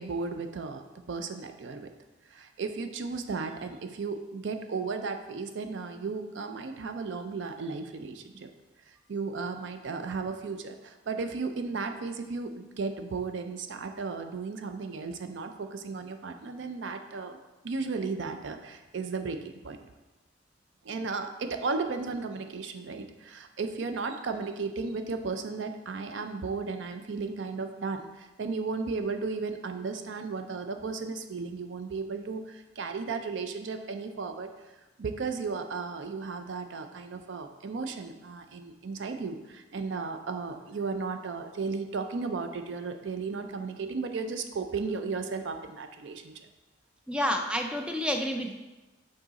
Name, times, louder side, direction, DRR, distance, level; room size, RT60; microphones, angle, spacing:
voice 1, 0.0-1.9 2.3-8.5 8.9-17.4 17.6-19.8 20.8-34.5 35.0-46.4, right 4 dB, 70° right, 7 dB, 0.5 m, -35 dB
voice 2, 47.1-48.5, equal, 5° right, 4 dB, 0.4 m, -29 dB
6.1 x 3.9 x 4.0 m, 1.1 s
head